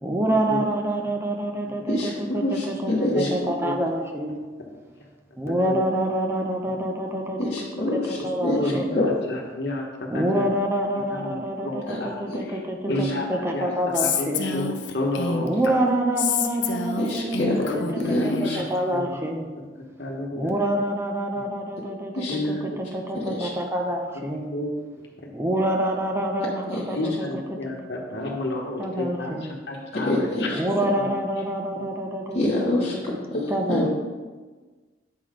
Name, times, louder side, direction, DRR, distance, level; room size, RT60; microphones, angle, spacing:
voice 1, 0.0-4.4 5.4-7.5 7.9-9.0 10.1-14.5 15.4-17.5 18.2-19.5 20.3-24.4 25.3-27.6 28.8-29.5 30.5-33.0 33.5-33.9, right 1 dB, 15° right, 2 dB, 0.7 m, -27 dB
voice 2, 2.4-3.3 7.4-8.6 8.9-9.1 11.9-12.0 13.0-13.1 17.0-18.6 22.1-22.3 23.4-23.5 26.7-26.8 29.9-30.6 32.3-32.9 33.6-33.9, left 1 dB, 40° left, -8 dB, 1.2 m, -26 dB
voice 3, 8.4-8.8 9.3-9.9 10.1-10.6 11.1-12.2 12.9-13.7 14.2-15.5 17.4-17.8 18.9-19.2 20.0-20.5 22.3-22.8 24.5-24.7 26.9-29.3 29.7-30.5 30.9-31.1 31.7-31.8 33.3-33.9, left 1 dB, 65° left, 0 dB, 1.2 m, -30 dB
Female speech woman speaking, 13.9-15.7 16.2-18.7, left 6 dB, 90° left, 0.7 m, -28 dB
8.4 x 4.0 x 5.0 m, 1.3 s
head